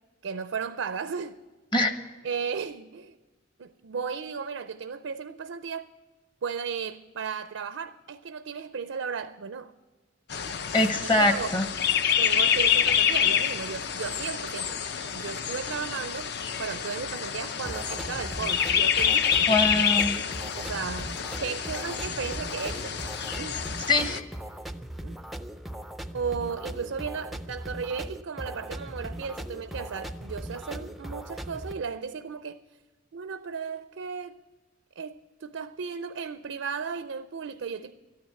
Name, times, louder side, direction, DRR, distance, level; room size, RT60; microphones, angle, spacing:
voice 1, 0.2-1.4 2.2-3.2 3.6-5.9 6.4-9.7 11.2-11.5 12.2-14.8 15.1-16.3 16.6-19.7 20.6-23.0 23.4-23.6 25.0-25.2 26.1-32.6 33.1-34.4 35.0-37.9, right 6 dB, 85° right, 0.5 m, -35 dB
sound 1, 10.3-24.2, left 8 dB, 60° left, 0.5 m, -27 dB
voice 2, 10.7-11.7 19.5-20.2 23.9-24.2, left 2 dB, 25° left, 0.9 m, -23 dB
sound 2, 17.7-31.7, right 1 dB, ahead, 0.4 m, -39 dB
13.0 x 9.5 x 8.7 m
head